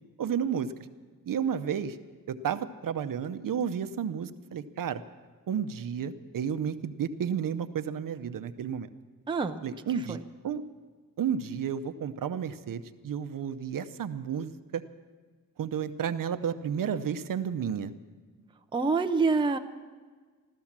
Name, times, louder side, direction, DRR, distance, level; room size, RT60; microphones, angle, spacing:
voice 1, 0.2-0.7 1.3-2.0 2.3-5.0 5.5-8.9 9.6-10.2 10.4-10.6 11.2-14.8 15.6-17.9, right 8 dB, 70° right, 10 dB, 0.7 m, -32 dB
voice 2, 9.3-9.6 9.9-10.2 18.7-19.6, right 4 dB, 15° right, 6 dB, 0.5 m, -26 dB
15.0 x 13.0 x 7.3 m, 1.5 s
wide cardioid pair, 170°, 35 cm